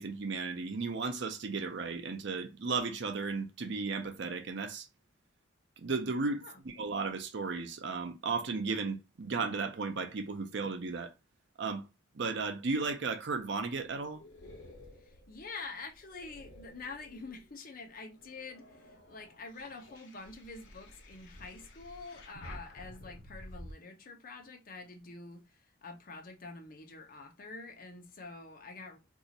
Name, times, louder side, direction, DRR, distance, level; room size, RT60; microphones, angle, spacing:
voice 1, 0.0-4.9 5.8-11.1 11.6-11.8 12.1-14.2, right 4 dB, 65° right, 0.6 m, -35 dB
sound 1, 13.4-17.6 18.1-23.7, left 1 dB, 75° left, 1.0 m, -52 dB
voice 2, 15.0-29.0, left 3 dB, 50° left, 0.8 m, -47 dB
2.7 x 2.5 x 4.1 m
head